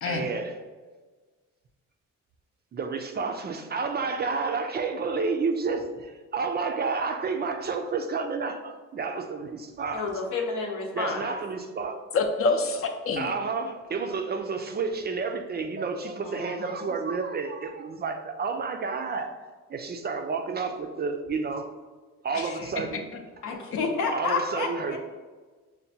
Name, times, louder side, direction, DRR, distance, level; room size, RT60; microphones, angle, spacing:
voice 1, 0.1-0.5 2.7-10.1 10.9-12.0 13.2-19.3 19.7-21.7 22.2-23.1 24.1-25.0, right 4 dB, 35° right, 5 dB, 0.4 m, -30 dB
voice 2, 9.9-11.3 16.2-16.8 23.4-25.0, left 4 dB, 75° left, 1 dB, 0.8 m, -30 dB
voice 3, 12.1-13.3 22.3-23.0 23.5-23.6, left 3 dB, 50° left, 5 dB, 0.6 m, -27 dB
5.5 x 2.2 x 2.7 m, 1.4 s
cardioid pair, 90°, 30 cm